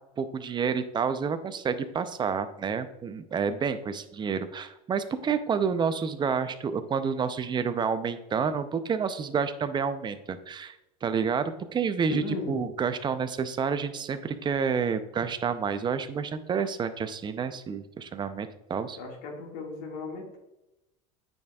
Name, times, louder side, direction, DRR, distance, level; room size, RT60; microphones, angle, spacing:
voice 1, 0.2-19.0, right 6 dB, 25° right, 11 dB, 0.5 m, -29 dB
voice 2, 12.1-12.6 19.0-20.4, left 3 dB, 65° left, 0 dB, 2.0 m, -36 dB
9.2 x 5.1 x 2.3 m, 0.93 s
supercardioid pair, 110°, 19 cm